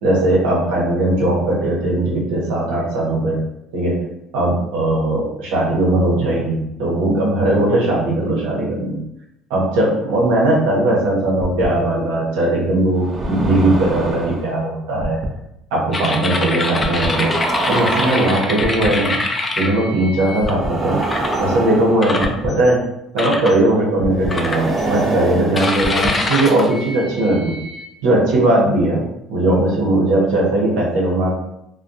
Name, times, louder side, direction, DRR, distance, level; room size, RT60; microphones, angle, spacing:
voice 1, 0.0-3.4 3.7-4.0 4.3-9.0 9.5-15.2 15.7-17.3 17.7-19.2 19.6-21.0 21.4-22.8 23.1-27.6 28.0-29.0 29.3-31.3, right 1 dB, 85° right, -4 dB, 0.9 m, -18 dB
sound 1, 11.4-11.7 13.0-14.5 15.0-15.3 16.8-18.9 20.4-22.5 24.0-26.1, right 2 dB, 30° right, 0.5 m, -25 dB
sound 2, 15.9-20.5 21.0-21.4 22.0-22.7 23.2-23.6 24.3-25.0 25.5-27.9, left 2 dB, 25° left, 0.4 m, -24 dB
2.3 x 2.2 x 2.7 m, 0.83 s
supercardioid pair, 85°, 0 cm